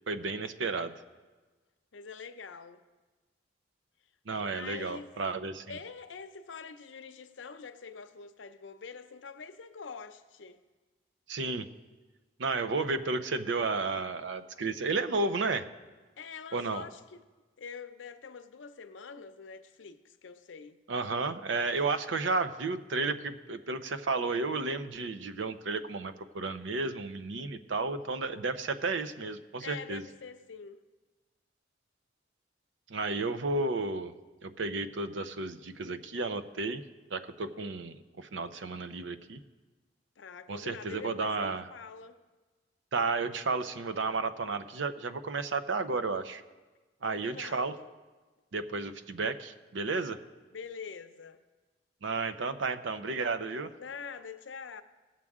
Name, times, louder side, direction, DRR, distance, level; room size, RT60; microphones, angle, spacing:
voice 1, 0.1-1.0 4.3-5.6 11.3-11.7 12.4-15.6 16.5-16.8 20.9-30.0 32.9-34.1 34.4-36.8 37.1-39.4 40.5-41.6 42.9-46.4 47.0-47.8 48.5-50.2 52.0-53.7, right 3 dB, 85° right, 0.6 m, -32 dB
voice 2, 1.9-2.8 4.4-5.1 5.7-10.6 16.2-17.2 17.6-20.8 29.6-30.8 40.2-42.2 47.0-47.9 50.5-51.4 53.8-54.8, left 5 dB, 90° left, 0.6 m, -45 dB
18.5 x 7.4 x 3.6 m
head